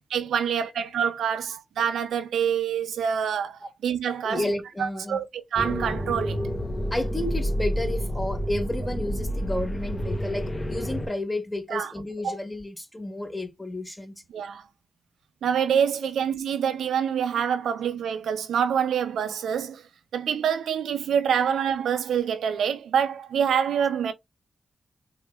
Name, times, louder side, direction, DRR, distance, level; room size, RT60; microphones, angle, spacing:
voice 1, 0.1-4.4 4.8-5.3 5.5-6.5 11.7-11.9 12.2-12.4 14.3-14.6 15.4-19.8 20.1-24.1, right 8 dB, 85° right, 0.4 m, -26 dB
voice 2, 4.2-5.2 6.9-14.2, left 1 dB, 20° left, 1.5 m, -31 dB
sound 1, 5.6-11.1, equal, 35° left, 0.7 m, -29 dB
3.6 x 3.0 x 2.3 m
supercardioid pair, 40°, 0 cm